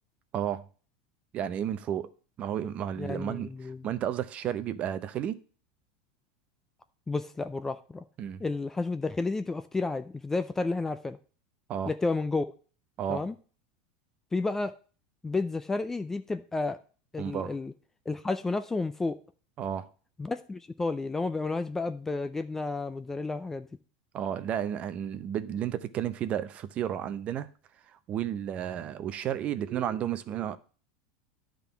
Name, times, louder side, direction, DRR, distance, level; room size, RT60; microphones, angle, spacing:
voice 1, 0.3-0.6 1.3-2.1 2.4-5.4 8.2-8.4 11.7-11.9 13.0-13.2 17.2-17.5 19.6-19.9 24.1-27.5 27.9-30.6, right 10 dB, 30° right, 0.6 m, -32 dB
voice 2, 3.0-3.9 7.1-8.0 8.4-11.2 11.9-12.5 13.1-13.3 14.3-14.7 15.2-16.8 17.1-17.7 18.1-19.2 20.2-23.7, left 3 dB, 10° left, 0.4 m, -31 dB
10.5 x 3.8 x 6.9 m
supercardioid pair, 145°, 4 cm